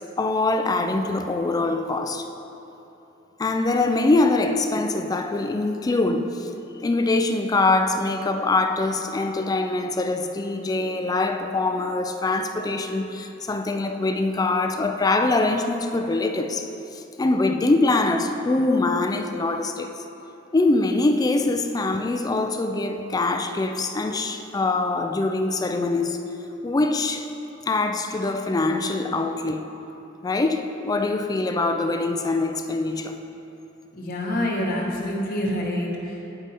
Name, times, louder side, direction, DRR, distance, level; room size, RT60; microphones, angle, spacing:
voice 1, 0.0-2.3 3.4-6.5 6.8-20.0 20.5-26.2 26.6-27.3 27.7-29.7 30.2-33.2, left 2 dB, 20° left, 0.3 m, -23 dB
voice 2, 34.0-36.3, left 1 dB, 45° left, 1.1 m, -27 dB
8.9 x 4.9 x 4.1 m
head